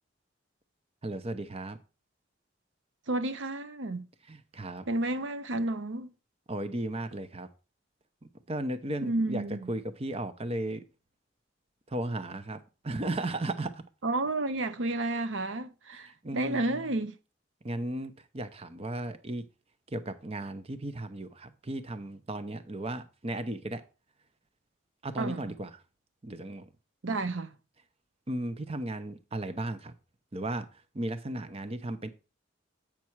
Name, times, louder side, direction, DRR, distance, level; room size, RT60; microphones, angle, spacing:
voice 1, 1.0-1.8 4.3-4.8 6.5-7.5 8.5-10.8 11.9-13.8 16.1-16.8 17.6-19.4 19.9-23.8 25.0-25.7 26.2-26.7 28.3-29.9 30.3-32.1, right 1 dB, 30° right, 0.7 m, -35 dB
voice 2, 3.1-4.1 4.9-6.1 9.0-9.7 14.0-17.2 25.2-25.5 27.0-27.5, right 2 dB, 75° right, 0.8 m, -31 dB
8.5 x 6.0 x 4.5 m
head